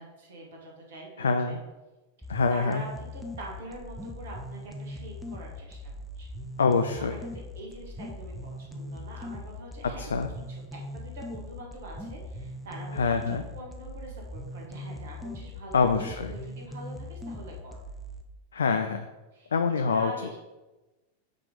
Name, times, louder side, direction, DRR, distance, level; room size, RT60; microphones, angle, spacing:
voice 1, 0.0-1.6 2.5-6.3 7.0-10.0 10.5-13.0 13.3-17.8 19.3-19.5 19.8-20.4, right 1 dB, 60° right, -1 dB, 1.5 m, -44 dB
voice 2, 1.2-1.6 2.3-2.8 6.6-7.2 10.0-10.3 12.9-13.4 15.7-16.3 18.5-19.1 19.5-20.1, left 5 dB, 70° left, 7 dB, 0.3 m, -25 dB
sound 1, 2.2-18.2, left 1 dB, ahead, 0.6 m, -40 dB
5.8 x 3.3 x 5.0 m, 1.1 s
figure-of-eight pair, 90°, 0 cm